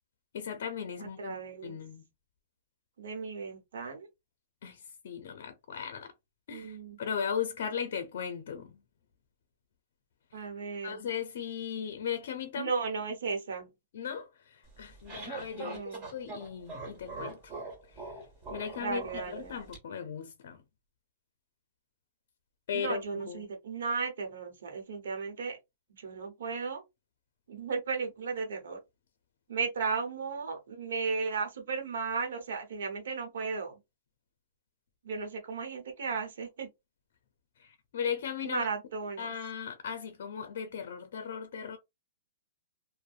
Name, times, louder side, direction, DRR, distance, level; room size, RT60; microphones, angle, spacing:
voice 1, 0.3-2.0 4.6-6.1 6.5-8.8 10.3-10.5 10.8-12.7 13.9-17.5 17.9-18.2 18.5-20.6 22.7-23.5 37.6-38.7 39.2-41.8, left 7 dB, 65° left, 0.5 m, -37 dB
voice 2, 1.0-1.8 3.0-4.1 6.5-7.0 10.3-11.0 12.5-13.7 15.5-16.1 18.8-19.6 22.7-25.6 26.0-26.8 27.5-28.8 29.5-33.8 35.0-36.7 38.4-39.3, right 5 dB, 80° right, 0.9 m, -35 dB
sound 1, 14.7-19.8, right 3 dB, 25° right, 1.5 m, -42 dB
2.6 x 2.1 x 2.4 m
hypercardioid pair, 145°, 0 cm